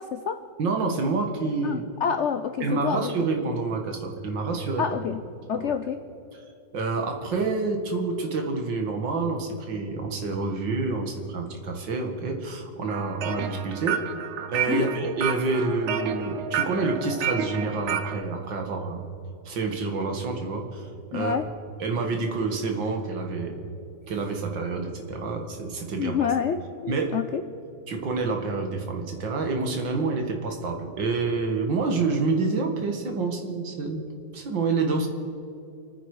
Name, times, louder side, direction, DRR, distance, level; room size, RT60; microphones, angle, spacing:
voice 1, 0.0-0.4 1.6-3.1 4.8-5.2 5.5-6.0 14.7-14.9 21.1-21.5 26.0-27.4, left 7 dB, 80° left, 9 dB, 0.6 m, -28 dB
voice 2, 0.6-1.8 2.6-4.9 6.7-14.0 14.5-19.1 19.5-21.4 21.8-23.7 24.1-26.3 26.9-27.2 27.9-34.0 34.3-35.1, right 3 dB, 70° right, 3 dB, 2.5 m, -28 dB
sound 1, 12.9-18.2, right 8 dB, 55° right, 0.8 m, -30 dB
29.0 x 9.7 x 4.9 m, 2.7 s
omnidirectional pair, 2.1 m